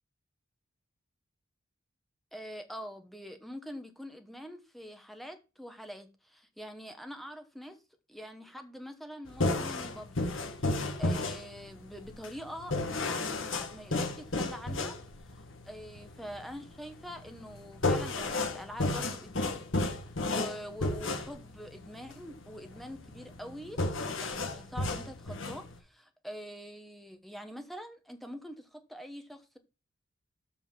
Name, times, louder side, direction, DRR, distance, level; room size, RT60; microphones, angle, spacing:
voice 1, 2.3-7.8 8.1-15.0 15.6-19.6 20.3-29.6, equal, ahead, 1.1 m, -45 dB
sound 1, 9.3-25.8, left 2 dB, 70° left, 1.8 m, -33 dB
7.3 x 5.5 x 5.7 m
head